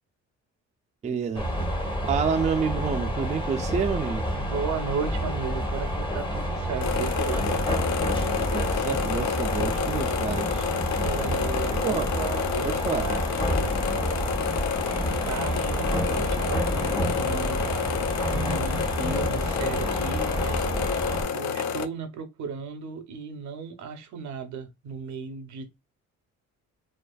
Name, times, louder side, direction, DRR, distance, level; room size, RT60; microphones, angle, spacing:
voice 1, 1.0-1.5 2.0-4.3 8.5-10.7 11.8-12.1 12.6-13.1, right 6 dB, 25° right, 0.4 m, -28 dB
sound 1, 1.3-21.2, equal, 15° left, 0.8 m, -29 dB
voice 2, 4.3-7.5 11.0-14.3 15.2-17.6 18.3-20.7 21.3-25.8, right 6 dB, 70° right, 0.6 m, -35 dB
sound 2, 6.8-21.8, left 7 dB, 65° left, 0.4 m, -30 dB
2.4 x 2.4 x 2.2 m
cardioid pair, 90°, 30 cm